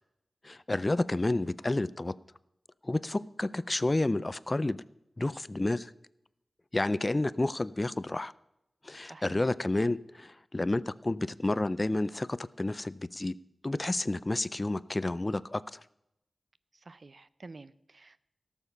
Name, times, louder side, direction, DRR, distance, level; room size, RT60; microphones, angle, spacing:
voice 1, 0.4-2.1 2.8-4.8 5.2-5.9 6.7-8.3 8.8-13.3 13.6-15.8, left 2 dB, 30° left, 18 dB, 0.4 m, -30 dB
voice 2, 9.0-9.5 16.7-18.2, right 3 dB, 50° right, 16 dB, 0.5 m, -49 dB
17.0 x 7.2 x 5.6 m, 0.83 s
wide cardioid pair, 85°, 0 cm